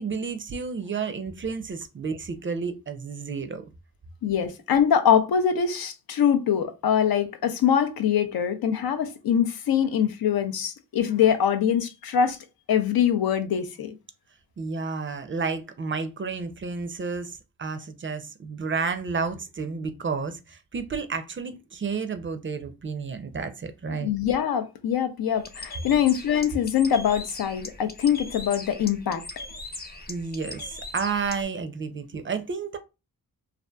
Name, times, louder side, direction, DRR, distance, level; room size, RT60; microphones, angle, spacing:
voice 1, 0.0-3.6 14.6-24.1 30.1-32.8, right 5 dB, 35° right, 0.4 m, -31 dB
voice 2, 4.2-12.4 12.7-13.9 24.0-29.2, left 8 dB, 80° left, 0.5 m, -23 dB
Bird, 25.4-31.4, left 2 dB, 25° left, 0.5 m, -40 dB
2.6 x 2.4 x 2.2 m
cardioid pair, 65°, 36 cm